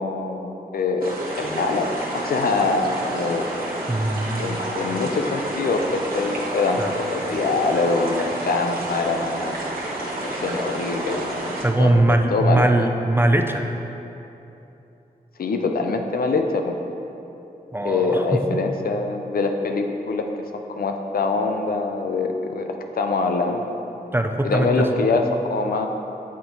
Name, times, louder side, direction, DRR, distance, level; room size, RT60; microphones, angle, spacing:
voice 1, 0.0-3.4 4.4-9.5 10.0-11.5 11.8-12.9 15.4-16.8 17.8-20.3 20.8-22.7 22.9-23.7 24.4-25.2 25.5-25.9, left 3 dB, 70° left, 4 dB, 0.5 m, -24 dB
sound 1, 1.0-11.7, right 1 dB, 65° right, 1.1 m, -29 dB
voice 2, 3.9-4.5 6.8-6.9 11.6-13.7 17.7-18.6 24.1-25.1, right 1 dB, 15° right, 4 dB, 0.4 m, -21 dB
8.3 x 3.9 x 3.0 m, 2.9 s
wide cardioid pair, 70°, 16 cm